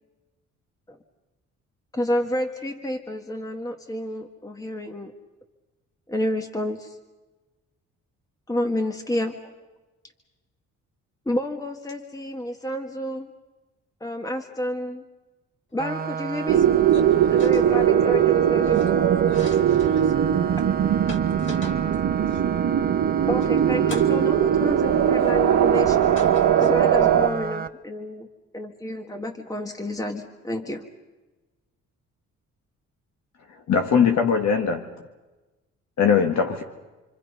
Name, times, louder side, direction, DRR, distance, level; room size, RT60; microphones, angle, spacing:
voice 1, 1.9-5.1 6.1-7.0 8.5-9.5 11.2-13.3 14.0-15.0 15.7-16.7 17.3-18.8 23.3-26.2 26.6-28.3 28.5-30.8, left 1 dB, 10° left, 5 dB, 1.6 m, -29 dB
sound 1, 15.8-27.7, right 6 dB, 30° right, 0.9 m, -32 dB
voice 2, 16.3-16.6 16.9-17.6 18.0-18.2 18.6-18.9 19.2-20.6 21.0-21.8 22.1-22.4 23.2-23.3 23.8-24.1 26.1-27.4, left 2 dB, 40° left, 3 dB, 4.4 m, -41 dB
sound 2, 16.5-27.3, right 9 dB, 65° right, 1.2 m, -20 dB
voice 3, 33.7-34.9 36.0-36.6, left 6 dB, 65° left, 4 dB, 1.7 m, -20 dB
27.5 x 25.0 x 5.5 m, 1.2 s
cardioid pair, 90°, 30 cm